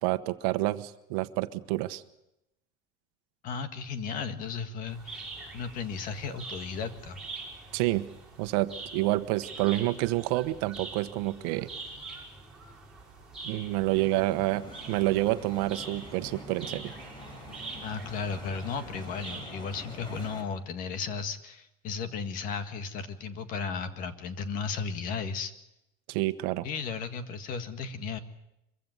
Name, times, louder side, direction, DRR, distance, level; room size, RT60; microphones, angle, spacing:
voice 1, 0.0-2.0 7.7-8.1 8.4-11.7 13.4-16.9 26.1-26.7, right 18 dB, 75° right, 11 dB, 1.2 m, -28 dB
voice 2, 3.4-7.2 17.8-25.5 26.6-28.2, left 5 dB, 40° left, 9 dB, 1.8 m, -35 dB
sound 1, 4.9-19.4, right 3 dB, 5° right, 5.5 m, -45 dB
sound 2, 13.6-20.4, equal, 20° left, 4.4 m, -46 dB
24.0 x 15.5 x 9.4 m, 0.88 s
cardioid pair, 165°, 20 cm